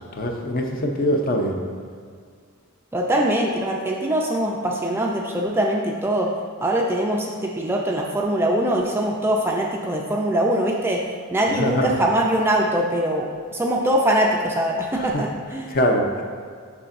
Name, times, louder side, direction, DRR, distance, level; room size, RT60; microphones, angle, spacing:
voice 1, 0.2-1.6 11.5-11.9 14.9-15.2 15.7-16.2, equal, 40° left, 2 dB, 0.6 m, -23 dB
voice 2, 2.9-6.3 6.6-11.0 11.3-15.7, right 1 dB, 10° right, -1 dB, 0.4 m, -22 dB
6.9 x 5.9 x 2.5 m, 2.1 s
head